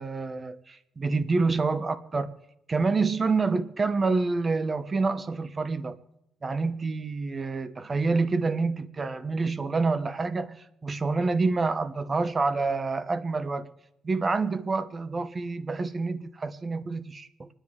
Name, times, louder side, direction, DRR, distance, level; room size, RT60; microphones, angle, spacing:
voice 1, 0.0-2.3 2.7-6.0 6.4-13.7 14.0-17.5, right 3 dB, 30° right, 12 dB, 1.0 m, -27 dB
26.0 x 10.0 x 3.7 m, 0.84 s
cardioid pair, 90°, 0 cm